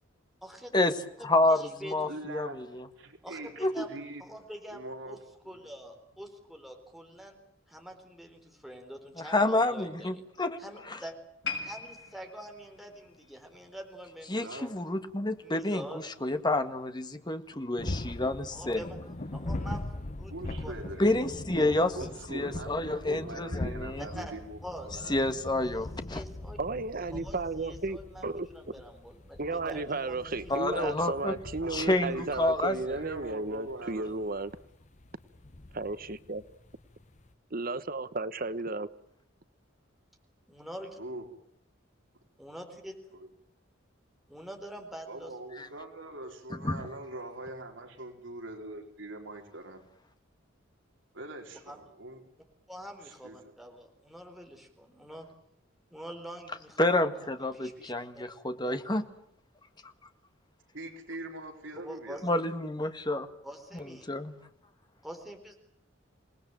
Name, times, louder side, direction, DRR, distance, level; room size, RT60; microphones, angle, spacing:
voice 1, 0.4-0.7 1.2-2.2 3.2-3.9 4.2-5.2 5.4-7.4 7.7-10.3 10.6-11.2 11.6-14.7 15.4-16.0 18.5-19.0 19.3-20.7 21.6-21.7 22.0-22.1 23.9-24.3 24.6-24.9 25.7-26.6 27.1-31.0 40.5-41.0 42.4-43.0 44.3-45.3 51.7-51.8 52.7-55.3 55.9-57.3 57.5-58.2 58.6-58.9 61.7-62.2 63.4-64.1 65.0-65.6, equal, ahead, 4.1 m, -45 dB
voice 2, 1.2-2.9 3.6-3.8 9.2-10.6 10.9-11.0 14.3-18.8 21.0-22.0 22.3-24.0 25.1-26.2 30.5-31.3 31.7-32.8 45.6-45.7 46.5-46.9 56.8-59.1 62.2-63.3 64.1-64.3, left 2 dB, 20° left, 1.7 m, -29 dB
voice 3, 2.1-4.2 4.7-5.7 14.4-15.0 20.3-21.1 22.0-25.2 31.6-32.3 32.9-34.1 41.0-41.2 43.2-43.3 45.1-49.8 51.1-52.2 53.0-53.4 60.7-62.6, right 1 dB, 70° right, 4.1 m, -43 dB
sound 1, 11.4-14.7 15.0-15.3 16.0-16.1, left 5 dB, 65° left, 6.9 m, -41 dB
sound 2, 17.8-37.3, left 1 dB, 35° left, 1.0 m, -41 dB
voice 4, 26.6-28.5 29.4-34.5 35.7-36.4 37.5-38.9, right 3 dB, 45° right, 1.1 m, -34 dB
27.5 x 19.5 x 9.1 m
head